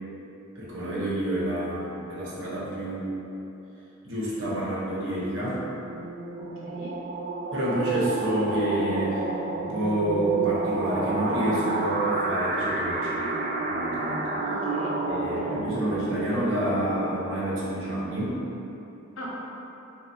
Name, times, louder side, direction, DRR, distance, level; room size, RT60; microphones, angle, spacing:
voice 1, 0.5-3.1 4.0-5.6 7.5-13.3 13.6-14.3 15.1-18.4, right 1 dB, 70° right, -7 dB, 1.0 m, -28 dB
sound 1, 5.6-18.0, right 2 dB, 50° right, 0.3 m, -30 dB
voice 2, 6.4-6.9 14.4-14.9 15.2-15.6 19.2-19.3, left 1 dB, 90° left, -5 dB, 0.8 m, -41 dB
5.8 x 2.0 x 2.9 m, 3.0 s
head